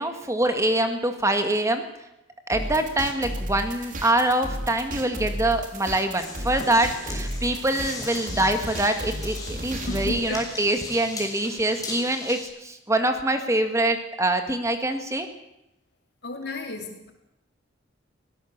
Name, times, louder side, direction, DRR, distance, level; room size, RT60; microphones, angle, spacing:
voice 1, 0.0-1.9 2.5-15.3, right 1 dB, 15° right, 6 dB, 1.9 m, -24 dB
sound 1, 2.5-10.2, right 1 dB, 45° right, 3.3 m, -33 dB
sound 2, 6.2-12.4, left 3 dB, 20° left, 6.4 m, -38 dB
voice 2, 9.9-10.5 16.2-17.1, left 2 dB, 60° left, 4 dB, 3.7 m, -33 dB
24.0 x 17.0 x 7.4 m, 0.85 s
head